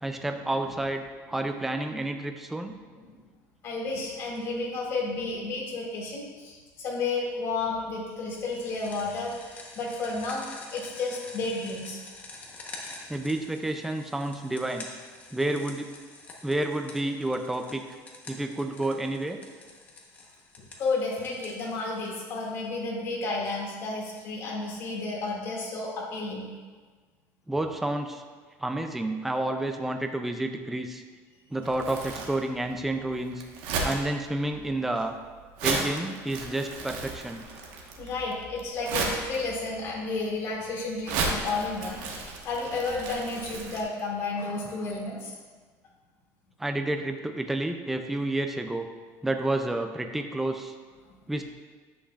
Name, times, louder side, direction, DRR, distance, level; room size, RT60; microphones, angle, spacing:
voice 1, 0.0-2.7 13.1-14.9 15.3-15.9 16.4-17.8 18.3-19.4 27.5-28.2 28.6-31.0 31.5-33.4 33.8-35.1 35.6-37.5 46.6-48.9 49.2-50.7 51.3-51.4, right 1 dB, 5° right, 6 dB, 0.3 m, -30 dB
voice 2, 3.6-10.5 10.7-12.0 20.8-26.5 38.0-45.3, left 3 dB, 40° left, -3 dB, 2.1 m, -32 dB
sound 1, 8.3-22.7, left 3 dB, 20° left, 1.0 m, -47 dB
Crumpling crinkling, 31.6-43.8, right 3 dB, 80° right, 1.2 m, -35 dB
9.9 x 7.7 x 2.4 m, 1.5 s
cardioid pair, 175°, 7 cm